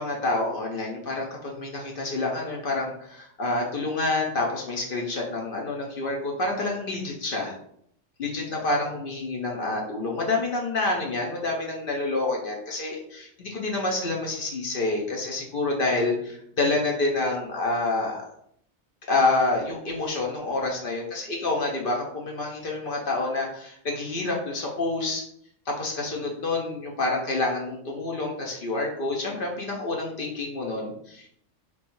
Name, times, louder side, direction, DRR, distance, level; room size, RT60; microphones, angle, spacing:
voice 1, 0.0-7.5 8.2-18.2 19.1-25.2 25.7-31.3, left 2 dB, 55° left, -1 dB, 0.7 m, -28 dB
3.5 x 2.9 x 2.5 m, 0.68 s
omnidirectional pair, 1.3 m